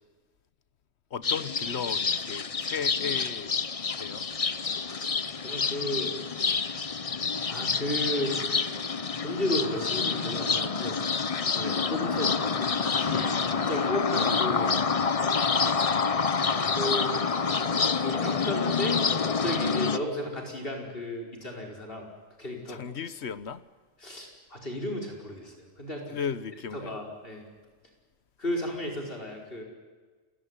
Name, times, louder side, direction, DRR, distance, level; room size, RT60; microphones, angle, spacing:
voice 1, 1.1-3.5 4.0-4.3 11.6-11.8 22.7-23.6 26.1-27.0, left 7 dB, 70° left, 15 dB, 1.2 m, -35 dB
sound 1, 1.2-20.0, left 5 dB, 35° left, 0.8 m, -27 dB
voice 2, 4.9-6.1 6.5-6.7 7.5-8.3 9.2-11.0 11.5-14.7 16.7-17.2 18.0-19.0 19.2-22.1 22.4-22.8 24.0-26.2 26.7-27.4 28.4-29.6, left 1 dB, 55° left, 1 dB, 5.3 m, -34 dB
29.5 x 17.0 x 9.9 m, 1.4 s
omnidirectional pair, 1.2 m